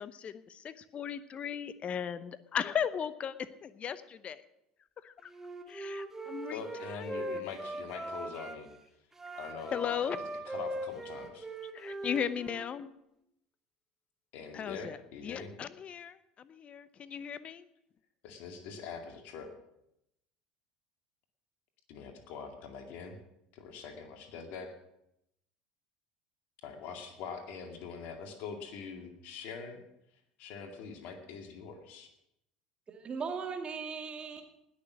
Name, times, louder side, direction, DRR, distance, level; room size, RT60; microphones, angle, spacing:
voice 1, 0.0-4.4 5.0-5.3 5.7-7.4 9.7-10.2 11.7-12.9 14.5-15.0 15.2-17.7, left 8 dB, 35° left, 15 dB, 0.8 m, -37 dB
Wind instrument woodwind instrument, 5.3-8.6 9.1-12.7, right 1 dB, 10° right, 1.8 m, -40 dB
voice 2, 6.5-8.7 9.4-9.9 10.5-11.5 14.3-15.5 18.2-19.5 21.9-23.2 23.5-24.7 26.6-29.8 30.4-32.1, left 5 dB, 55° left, 5 dB, 2.3 m, -43 dB
voice 3, 32.9-34.4, right 5 dB, 30° right, 4 dB, 2.3 m, -38 dB
19.5 x 6.7 x 6.2 m, 0.82 s
figure-of-eight pair, 70°, 3 cm